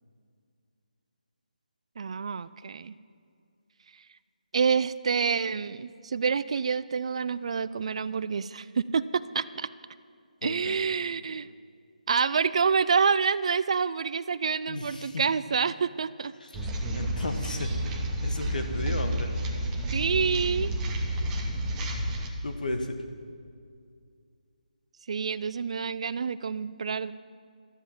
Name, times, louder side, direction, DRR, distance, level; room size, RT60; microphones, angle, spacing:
voice 1, 2.0-2.9 4.5-9.7 10.4-11.5 12.1-16.3 19.9-20.7 25.1-27.1, right 5 dB, 45° right, 17 dB, 0.3 m, -27 dB
voice 2, 10.4-10.7 14.7-15.2 16.5-17.7 18.2-19.3 22.4-23.0, left 2 dB, 70° left, 6 dB, 1.5 m, -34 dB
sound 1, 16.5-22.3, right 1 dB, 10° right, 0.9 m, -30 dB
12.5 x 7.5 x 8.9 m, 2.3 s
figure-of-eight pair, 160°, 5 cm